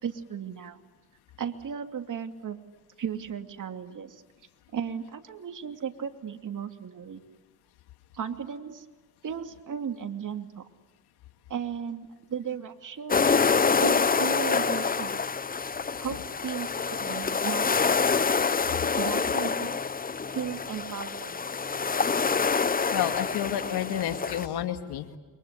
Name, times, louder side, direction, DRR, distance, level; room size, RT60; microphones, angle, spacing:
voice 1, 0.0-0.8 1.4-2.6 3.0-4.2 4.7-7.2 8.1-8.8 9.2-10.7 11.5-13.4 13.8-15.2 16.0-17.9 19.0-19.8 20.3-21.5, right 7 dB, 55° right, 6 dB, 2.8 m, -35 dB
sound 1, 13.1-24.5, left 5 dB, 25° left, 0.8 m, -26 dB
voice 2, 22.9-25.2, left 11 dB, 85° left, 7 dB, 2.3 m, -30 dB
28.5 x 24.0 x 8.4 m, 1.3 s
cardioid pair, 85°, 38 cm